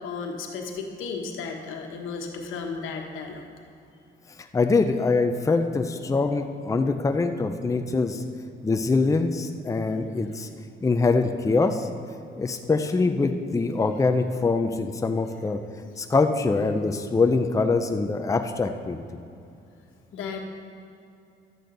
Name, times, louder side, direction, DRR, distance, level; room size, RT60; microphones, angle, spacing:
voice 1, 0.0-3.4 20.1-20.4, left 5 dB, 85° left, 2 dB, 1.3 m, -34 dB
voice 2, 4.5-8.2 8.6-10.5 10.8-11.9 12.3-15.6 16.0-19.0, left 3 dB, 15° left, 6 dB, 0.6 m, -24 dB
12.0 x 8.3 x 4.0 m, 2.6 s
cardioid pair, 90°, 20 cm